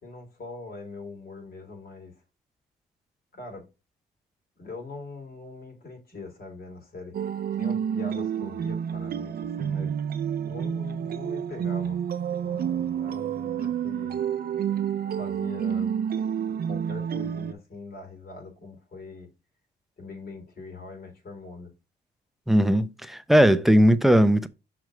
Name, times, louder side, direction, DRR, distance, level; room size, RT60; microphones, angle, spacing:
voice 1, 0.0-2.2 3.3-3.7 4.6-7.1 7.6-9.9 10.4-12.0 12.3-14.2 15.1-15.9 16.5-19.3 20.0-21.7, left 3 dB, 50° left, 3.3 m, -42 dB
sound 1, 7.1-17.5, right 8 dB, 50° right, 0.6 m, -29 dB
voice 2, 22.5-24.5, equal, ahead, 0.6 m, -18 dB
6.3 x 3.5 x 5.0 m
cardioid pair, 90°, 20 cm